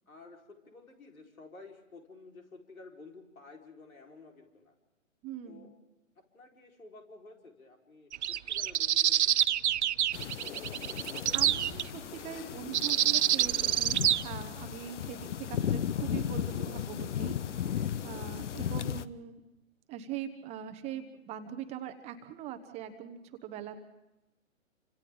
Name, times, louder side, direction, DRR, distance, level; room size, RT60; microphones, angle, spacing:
voice 1, 0.1-4.7 5.5-5.7 6.2-9.3 18.3-18.9, left 3 dB, 85° left, 1 dB, 4.8 m, -53 dB
voice 2, 5.2-5.7 10.9-19.4 19.9-23.8, right 9 dB, 15° right, 8 dB, 0.9 m, -42 dB
sound 1, 8.1-11.8 12.7-14.2, right 11 dB, 55° right, 0.6 m, -27 dB
sound 2, 10.1-19.1, left 9 dB, 60° left, 0.8 m, -36 dB
29.0 x 26.0 x 3.8 m, 0.94 s
hypercardioid pair, 135°, 41 cm